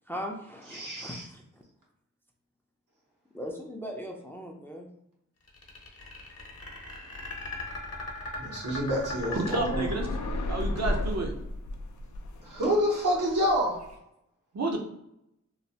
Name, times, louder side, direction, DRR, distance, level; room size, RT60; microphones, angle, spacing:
voice 1, 0.1-1.6 3.3-4.9, equal, 5° left, 1 dB, 0.4 m, -39 dB
voice 2, 0.7-1.2 8.4-10.0 12.4-13.8, equal, 85° right, -4 dB, 1.1 m, -28 dB
sound 1, 5.5-10.5, left 2 dB, 55° left, 0.8 m, -38 dB
sound 2, 9.0-13.9, left 1 dB, 70° left, 0.5 m, -34 dB
voice 3, 9.3-10.1 10.5-11.4 14.5-14.8, right 2 dB, 60° right, 2 dB, 0.7 m, -30 dB
3.1 x 2.1 x 2.7 m, 0.79 s
wide cardioid pair, 55°, 30 cm